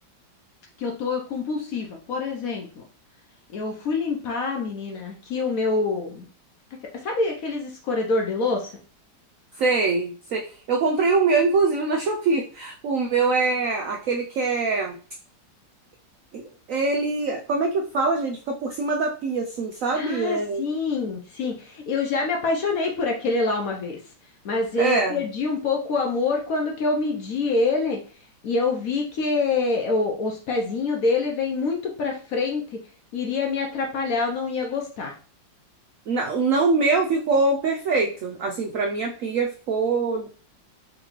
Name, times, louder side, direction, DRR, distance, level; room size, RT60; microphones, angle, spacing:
voice 1, 0.8-2.8 3.5-6.3 7.0-8.7 19.9-24.0 24.4-28.0 28.4-32.8 33.1-35.1, left 3 dB, 60° left, 1 dB, 1.0 m, -26 dB
voice 2, 9.6-15.0 16.3-16.4 16.7-20.6 24.8-25.2 36.1-40.3, right 3 dB, 90° right, 2 dB, 0.7 m, -23 dB
3.8 x 3.1 x 3.0 m, 0.38 s
omnidirectional pair, 2.0 m